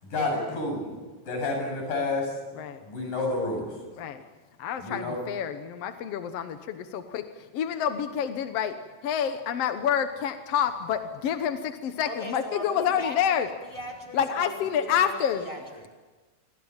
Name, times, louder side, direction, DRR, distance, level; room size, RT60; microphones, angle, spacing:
voice 1, 0.0-0.9 1.3-2.3 2.9-3.7 4.8-5.2, left 2 dB, 75° left, 2 dB, 9.8 m, -29 dB
voice 2, 4.6-7.2 7.5-8.8 9.0-13.5 14.1-15.4, left 8 dB, 60° left, 8 dB, 1.8 m, -28 dB
voice 3, 12.1-13.4 13.6-15.9, equal, 10° right, 4 dB, 4.9 m, -38 dB
28.5 x 25.0 x 7.4 m, 1.3 s
omnidirectional pair, 3.7 m